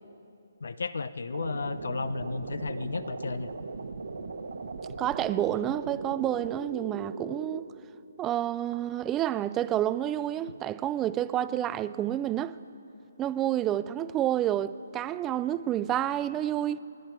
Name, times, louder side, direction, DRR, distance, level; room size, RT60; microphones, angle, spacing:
voice 1, 0.6-3.5, left 4 dB, 80° left, 0.6 m, -33 dB
sound 1, 1.3-7.6, right 4 dB, 80° right, 1.2 m, -38 dB
voice 2, 5.0-7.7 8.2-12.6 13.2-16.8, right 12 dB, 15° right, 0.3 m, -29 dB
29.5 x 10.0 x 4.5 m
hypercardioid pair, 160°, 0 cm